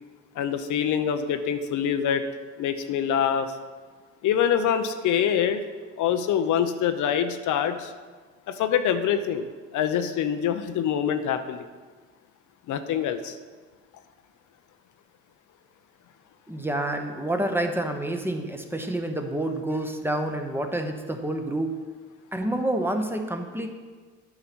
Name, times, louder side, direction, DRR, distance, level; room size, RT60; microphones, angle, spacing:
voice 1, 0.4-2.2 2.6-3.5 4.2-5.6 6.0-7.9 8.5-9.5 9.7-11.7 12.7-13.3, left 8 dB, 80° left, 9 dB, 0.7 m, -25 dB
voice 2, 16.5-21.8 22.3-23.7, right 1 dB, 5° right, 4 dB, 0.9 m, -28 dB
8.8 x 5.5 x 6.1 m, 1.4 s
cardioid pair, 90°, 30 cm